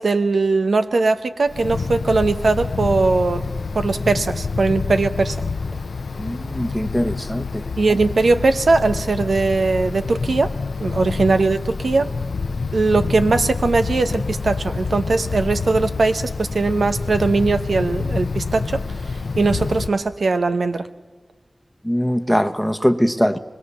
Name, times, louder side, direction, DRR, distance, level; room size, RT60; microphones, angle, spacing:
voice 1, 0.0-3.5 3.7-5.4 7.8-10.5 10.8-12.1 12.7-20.9, right 3 dB, 90° right, 9 dB, 0.9 m, -20 dB
Wind, 1.5-19.9, left 4 dB, 90° left, 0.7 m, -27 dB
voice 2, 6.2-7.6 21.8-23.4, equal, ahead, 10 dB, 1.0 m, -21 dB
24.5 x 21.5 x 7.0 m, 1.3 s
wide cardioid pair, 70°, 0 cm